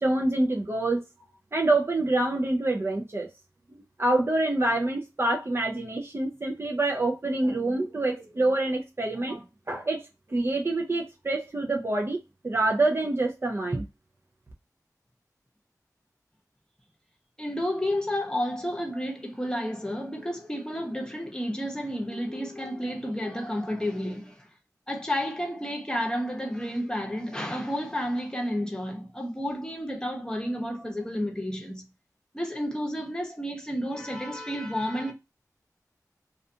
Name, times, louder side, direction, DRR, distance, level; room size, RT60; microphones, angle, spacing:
voice 1, 0.0-1.0 1.5-3.3 4.0-12.2 12.4-13.9, right 2 dB, 40° right, 0.5 m, -26 dB
voice 2, 17.4-24.5 24.9-31.8 32.3-35.1, equal, 10° left, 0.9 m, -31 dB
2.4 x 2.3 x 2.7 m
wide cardioid pair, 45°, 7 cm